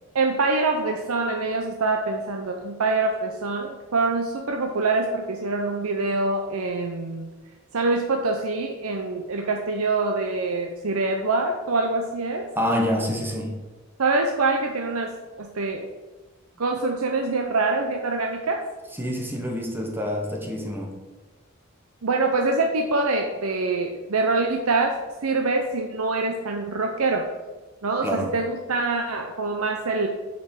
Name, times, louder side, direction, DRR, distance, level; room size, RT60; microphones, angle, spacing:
voice 1, 0.1-7.3 7.7-12.5 14.0-15.9 16.6-18.6 22.0-27.3 27.8-30.1, right 3 dB, 85° right, 3 dB, 0.7 m, -25 dB
voice 2, 12.6-13.6 19.0-20.9 28.0-28.4, equal, 10° right, 1 dB, 1.1 m, -27 dB
7.0 x 5.2 x 6.2 m, 1.2 s
head